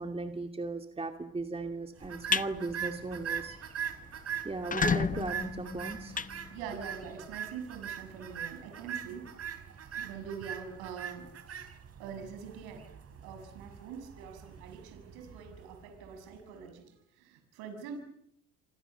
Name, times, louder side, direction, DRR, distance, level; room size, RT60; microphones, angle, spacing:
voice 1, 0.0-3.6 4.4-6.2, right 3 dB, 15° right, 5 dB, 2.4 m, -37 dB
sound 1, 2.0-2.5 2.9-3.2 3.5-3.6 3.9-4.0 4.5-7.0, left 6 dB, 20° left, 0.9 m, -32 dB
sound 2, 2.0-16.4, right 8 dB, 40° right, 4.3 m, -41 dB
voice 2, 6.5-9.6 9.9-12.9 13.2-18.0, right 6 dB, 75° right, 6 dB, 6.9 m, -44 dB
28.0 x 26.0 x 7.0 m, 0.76 s
supercardioid pair, 80°, 37 cm